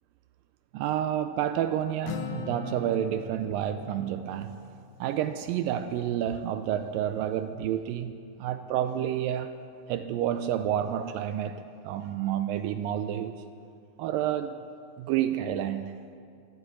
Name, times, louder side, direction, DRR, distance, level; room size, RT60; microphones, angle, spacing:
voice 1, 0.7-4.7 5.0-9.5 9.9-13.4 14.0-14.6 15.0-16.0, right 10 dB, 80° right, 9 dB, 2.0 m, -29 dB
Acoustic guitar, 2.1-5.7, left 5 dB, 75° left, 2.5 m, -41 dB
13.0 x 11.0 x 8.4 m, 2.4 s
omnidirectional pair, 4.4 m